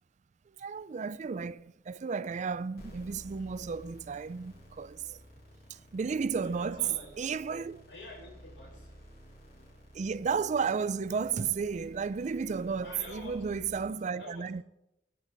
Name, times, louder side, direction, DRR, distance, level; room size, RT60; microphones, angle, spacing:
voice 1, 0.6-5.2 5.7-6.9 7.2-7.8 9.9-14.6, right 5 dB, 40° right, 0.4 m, -33 dB
sound 1, 2.8-13.9, equal, 60° left, 3.5 m, -53 dB
voice 2, 6.3-7.1 7.9-8.9 12.8-14.6, left 2 dB, 90° left, 5.4 m, -48 dB
21.5 x 10.0 x 4.0 m
head